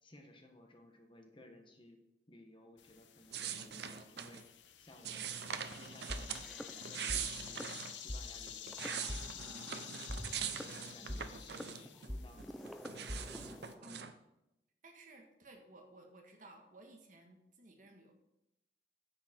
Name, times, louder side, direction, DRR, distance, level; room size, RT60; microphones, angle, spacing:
voice 1, 0.0-2.0 2.3-4.5 4.8-5.3 5.7-7.7 7.9-8.8 9.3-9.9 10.4-12.6, left 1 dB, 30° left, 4 dB, 1.3 m, -59 dB
sound 1, 2.8-13.7, left 9 dB, 90° left, 0.9 m, -51 dB
sound 2, 3.3-4.4 5.0-6.4 6.8-7.9 8.5-12.1 12.4-14.1, right 8 dB, 65° right, 0.7 m, -42 dB
sound 3, 6.1-7.2 7.5-7.7 8.1-8.2 8.7-9.7 10.1-14.1, equal, ahead, 0.5 m, -44 dB
voice 2, 14.8-18.1, right 2 dB, 45° right, 3 dB, 1.6 m, -57 dB
9.7 x 7.4 x 4.5 m, 0.89 s
head